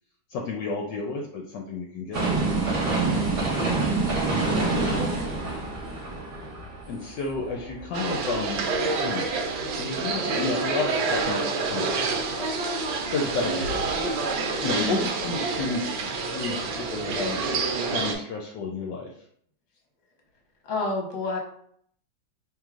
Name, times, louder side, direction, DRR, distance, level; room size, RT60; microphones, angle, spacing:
voice 1, 0.3-2.5 4.7-5.0 6.9-8.7 9.0-12.0 12.4-12.5 13.1-14.1 14.6-17.4 17.9-19.1, left 4 dB, 75° left, 0 dB, 1.1 m, -32 dB
sound 1, 2.1-8.1 8.5-8.6, right 3 dB, 45° right, 1.1 m, -27 dB
voice 2, 4.9-5.6 14.7-15.1 20.6-21.4, left 2 dB, 45° left, 0 dB, 1.2 m, -31 dB
sound 2, 7.9-18.1, right 4 dB, 80° right, 1.5 m, -28 dB
4.6 x 3.2 x 2.4 m, 0.65 s
omnidirectional pair, 2.1 m